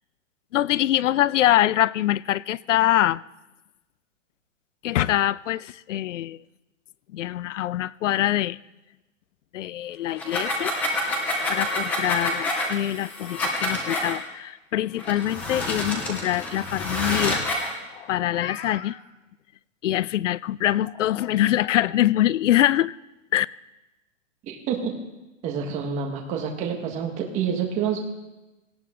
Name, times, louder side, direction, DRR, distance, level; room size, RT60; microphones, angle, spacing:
voice 1, 0.5-3.2 4.8-6.4 7.1-8.6 9.5-10.7 11.5-17.7 18.1-19.0 19.8-23.0 23.3-23.5, left 13 dB, 70° left, 22 dB, 0.5 m, -24 dB
sound 1, 10.1-14.2 15.0-17.7, left 1 dB, 5° left, 0.4 m, -28 dB
Meow, 17.8-19.0 20.9-21.9, left 8 dB, 50° left, 1.2 m, -40 dB
voice 2, 24.4-24.9 25.4-28.0, right 7 dB, 20° right, 2 dB, 1.6 m, -28 dB
18.0 x 17.0 x 3.8 m, 1.0 s
hypercardioid pair, 165°, 38 cm